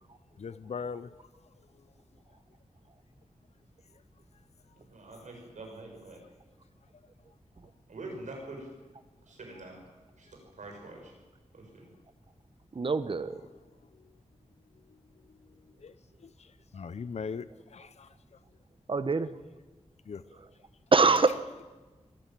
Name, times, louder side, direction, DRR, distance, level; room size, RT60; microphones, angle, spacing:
voice 1, 0.4-1.2 15.8-15.9 16.2-18.1 20.1-20.2, left 5 dB, 60° left, 0.7 m, -40 dB
voice 2, 4.8-6.2 7.9-8.7 9.3-9.8 10.2-11.1 11.5-11.9, right 2 dB, 85° right, 6.8 m, -45 dB
voice 3, 12.7-13.4 18.9-19.3 20.9-21.6, right 4 dB, 45° right, 1.1 m, -25 dB
22.5 x 14.5 x 9.0 m
wide cardioid pair, 115°, 12 cm